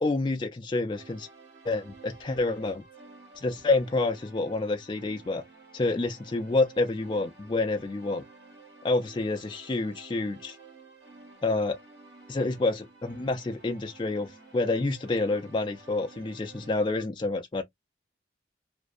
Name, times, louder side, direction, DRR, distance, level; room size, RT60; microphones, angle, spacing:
voice 1, 0.0-1.3 1.6-2.8 3.4-5.4 5.7-8.2 8.8-10.6 11.4-11.8 12.3-17.6, left 2 dB, 25° left, 0.3 m, -28 dB
sound 1, 0.9-17.1, right 3 dB, 75° right, 1.4 m, -52 dB
2.5 x 2.1 x 2.3 m
head